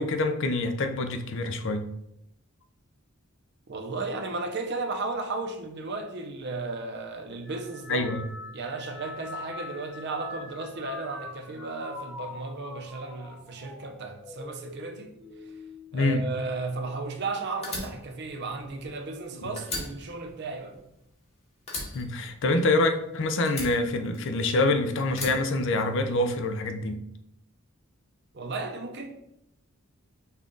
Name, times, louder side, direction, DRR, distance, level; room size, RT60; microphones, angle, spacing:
voice 1, 0.0-1.8 7.9-8.3 15.9-16.2 21.9-27.0, left 2 dB, 60° left, 0.5 m, -26 dB
voice 2, 3.7-8.1 8.5-15.1 15.9-20.8 28.3-29.1, right 3 dB, 55° right, 0.6 m, -34 dB
sound 1, 7.4-17.1 17.5-18.1 19.1-19.4, left 2 dB, ahead, 0.6 m, -44 dB
Fire, 17.6-19.3 19.6-21.3 21.7-23.0 23.5-24.6 25.1-26.3, left 2 dB, 30° left, 1.2 m, -38 dB
5.5 x 2.4 x 3.7 m
head